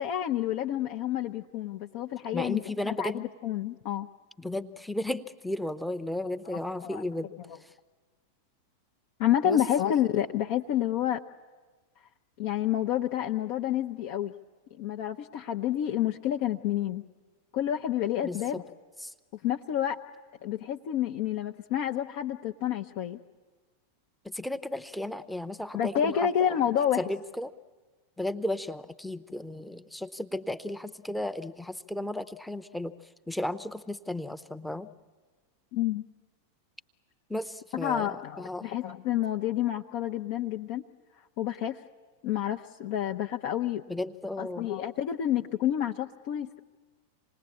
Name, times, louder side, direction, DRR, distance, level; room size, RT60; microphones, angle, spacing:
voice 1, 0.0-4.1 6.5-7.0 7.4-7.6 9.2-11.2 12.4-14.3 14.8-17.0 17.5-18.6 19.4-20.0 20.4-23.2 25.7-27.0 35.7-36.0 37.7-40.8 41.4-41.8 42.2-43.8 44.4-46.6, left 11 dB, 45° left, 3 dB, 0.7 m, -29 dB
voice 2, 2.3-3.2 4.4-7.3 9.4-9.6 18.2-18.6 19.0-19.1 24.2-26.5 27.0-27.5 28.2-32.9 33.3-34.9 37.3-38.7 43.9-44.7, left 1 dB, ahead, 11 dB, 0.8 m, -34 dB
27.0 x 19.5 x 8.7 m, 1.3 s
figure-of-eight pair, 90°, 0 cm